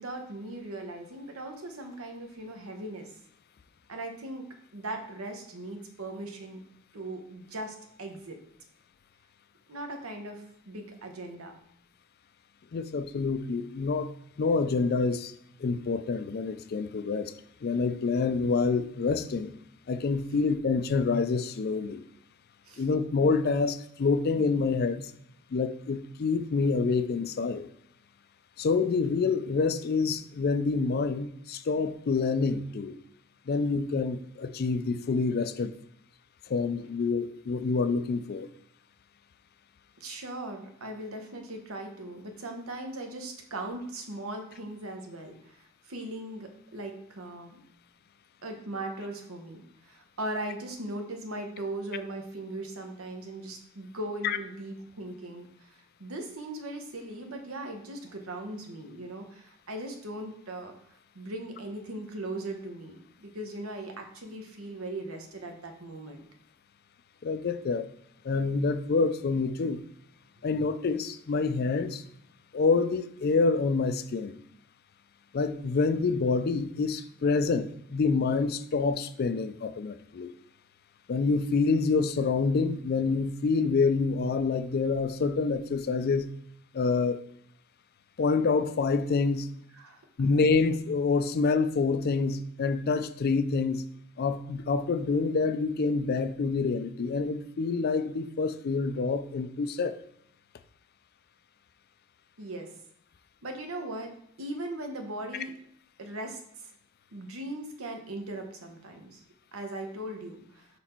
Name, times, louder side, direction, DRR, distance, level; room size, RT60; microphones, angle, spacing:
voice 1, 0.0-3.1 3.9-4.4 4.7-6.6 6.9-8.4 9.7-11.5 22.6-22.8 40.0-47.6 48.4-55.7 56.0-66.2 89.7-90.0 102.4-102.7 103.4-105.5 106.0-106.7 107.1-109.2 109.5-110.7, right 1 dB, 90° right, 1.0 m, -39 dB
voice 2, 12.7-14.1 14.4-15.3 15.6-17.3 17.6-19.5 19.9-22.0 22.8-25.1 25.5-27.7 28.6-33.0 33.5-35.7 36.5-38.5 54.2-54.4 67.2-67.9 68.2-69.8 70.4-72.0 72.5-74.4 75.3-80.3 81.1-86.3 86.7-87.2 88.2-89.5 90.2-93.8 94.2-100.0, left 4 dB, 50° left, 0.4 m, -27 dB
5.1 x 4.1 x 4.4 m
head